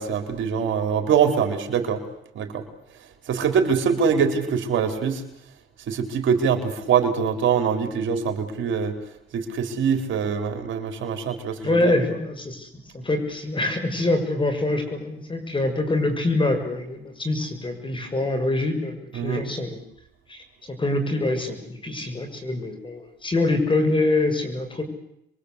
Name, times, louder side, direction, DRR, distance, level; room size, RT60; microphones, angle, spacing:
voice 1, 0.0-2.0 2.3-2.6 3.3-5.2 5.9-8.9 9.3-11.9 19.1-19.4, right 6 dB, 70° right, 5 dB, 4.3 m, -23 dB
voice 2, 11.6-19.8 20.3-24.8, left 2 dB, 25° left, 7 dB, 6.8 m, -25 dB
28.0 x 23.0 x 8.3 m, 0.78 s
cardioid pair, 90°, 20 cm